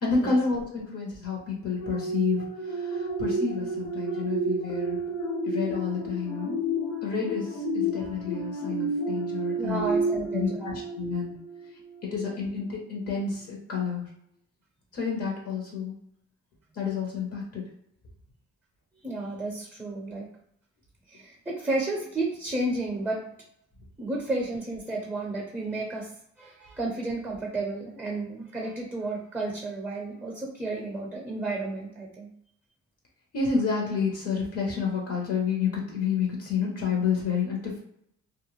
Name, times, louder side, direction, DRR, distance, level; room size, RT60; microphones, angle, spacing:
voice 1, 0.0-5.0 5.4-6.6 7.0-9.9 10.3-11.4 12.0-14.1 14.9-15.9 16.7-17.6 33.3-37.8, left 5 dB, 50° left, -2 dB, 1.0 m, -29 dB
sound 1, 1.8-11.7 12.1-12.3, right 1 dB, 90° left, 0.7 m, -30 dB
voice 2, 9.6-10.7 19.0-20.3 21.1-23.3 24.0-26.1 26.4-32.3, right 2 dB, 5° right, -2 dB, 0.7 m, -32 dB
2.4 x 2.2 x 3.1 m, 0.72 s
cardioid pair, 90°, 30 cm